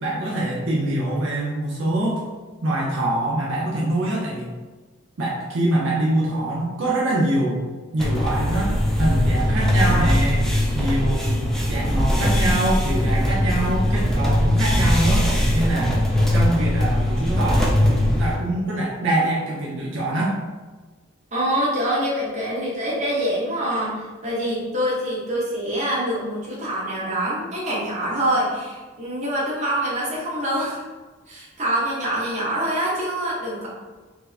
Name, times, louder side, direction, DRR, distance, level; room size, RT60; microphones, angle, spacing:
voice 1, 0.0-2.2 2.6-4.5 5.2-7.6 7.9-16.0 16.3-20.3, right 1 dB, 70° right, -5 dB, 0.6 m, -24 dB
sound 1, 8.0-18.4, left 1 dB, ahead, 0.4 m, -20 dB
voice 2, 21.3-30.8 31.3-33.7, right 1 dB, 35° right, -7 dB, 1.1 m, -25 dB
4.4 x 2.1 x 2.7 m, 1.3 s
head